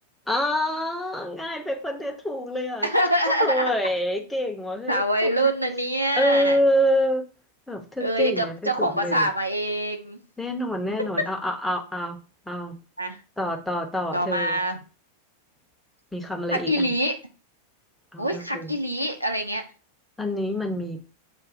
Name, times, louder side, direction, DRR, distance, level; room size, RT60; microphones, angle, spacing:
voice 1, 0.3-2.9 3.3-5.5 6.2-7.2 7.7-9.3 10.4-12.2 12.5-12.8 13.4-14.6 16.1-16.9 18.1-18.7 20.2-21.0, equal, 5° left, 2 dB, 0.8 m, -26 dB
voice 2, 2.8-3.7 4.9-6.6 8.0-10.2 13.0-13.2 14.1-14.8 16.5-17.1 18.2-19.6, right 1 dB, 90° right, 4 dB, 0.7 m, -25 dB
6.1 x 2.6 x 2.5 m, 0.35 s
figure-of-eight pair, 90°, 0 cm